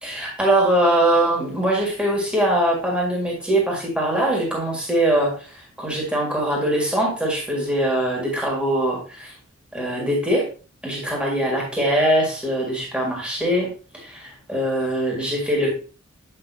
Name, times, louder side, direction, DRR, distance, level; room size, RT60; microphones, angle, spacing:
voice 1, 0.0-9.3 9.7-10.5 10.8-15.7, right 1 dB, 5° right, -2 dB, 1.7 m, -22 dB
8.1 x 5.2 x 2.7 m, 0.37 s
head